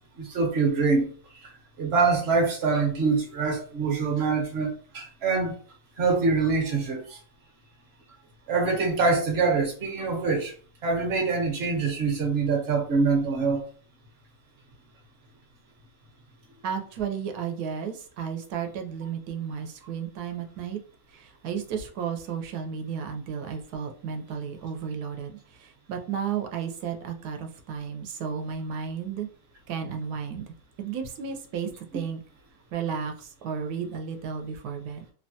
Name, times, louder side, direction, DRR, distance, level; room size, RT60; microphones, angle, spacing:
voice 1, 0.2-1.1 1.4-1.5 1.8-5.6 6.0-7.2 8.5-10.5 10.8-13.6, right 4 dB, 50° right, 1.0 m, -24 dB
voice 2, 16.6-20.8 21.1-29.3 29.7-32.2 32.7-35.0, right 7 dB, 85° right, 1.1 m, -33 dB
2.9 x 2.1 x 2.7 m
omnidirectional pair, 1.6 m